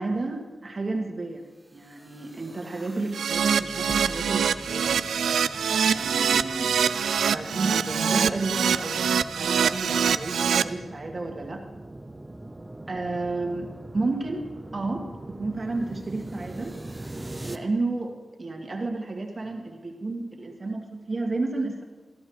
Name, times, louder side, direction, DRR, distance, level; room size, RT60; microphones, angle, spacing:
voice 1, 0.0-1.4 1.7-5.0 5.9-6.8 7.2-11.7 12.9-14.5 14.7-16.7 17.5-21.8, right 3 dB, 40° right, 2 dB, 1.7 m, -31 dB
sound 1, 1.8-17.6, right 1 dB, 20° right, 0.7 m, -42 dB
Keyboard (musical), 3.1-10.6, right 7 dB, 90° right, 0.3 m, -24 dB
14.0 x 11.5 x 4.7 m, 1.3 s
cardioid pair, 60°, 0 cm